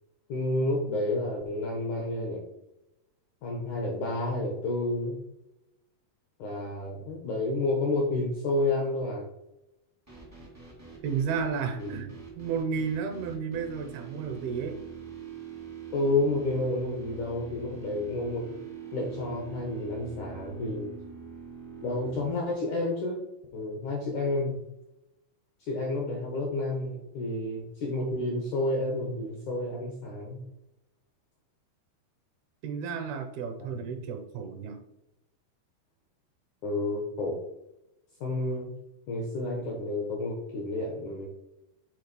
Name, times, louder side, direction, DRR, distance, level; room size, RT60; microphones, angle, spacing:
voice 1, 0.3-2.5 3.4-5.2 6.4-9.3 11.8-12.0 15.9-18.5 18.9-20.9 21.8-23.2 23.5-24.6 25.6-30.4 33.7-33.9 36.6-37.4 38.2-38.7 39.1-41.3, left 2 dB, 70° left, 1 dB, 1.9 m, -30 dB
sound 1, 10.1-22.3, right 7 dB, 10° right, 0.6 m, -44 dB
voice 2, 11.0-14.8 32.6-34.8, right 6 dB, 75° right, 6 dB, 2.5 m, -32 dB
7.8 x 3.7 x 5.3 m, 0.90 s
omnidirectional pair, 4.8 m